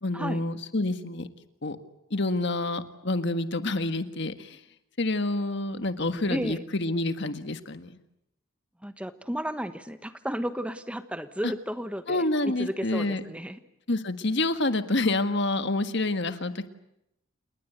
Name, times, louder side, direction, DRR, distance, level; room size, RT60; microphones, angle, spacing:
voice 1, 0.0-1.3 1.6-1.8 2.1-4.6 5.0-8.0 11.4-11.5 12.1-13.2 13.9-16.7, left 2 dB, 55° left, 10 dB, 1.6 m, -28 dB
voice 2, 6.3-6.6 8.8-12.3 12.6-13.6, equal, 5° right, 11 dB, 1.2 m, -33 dB
28.5 x 20.5 x 8.1 m, 0.83 s
head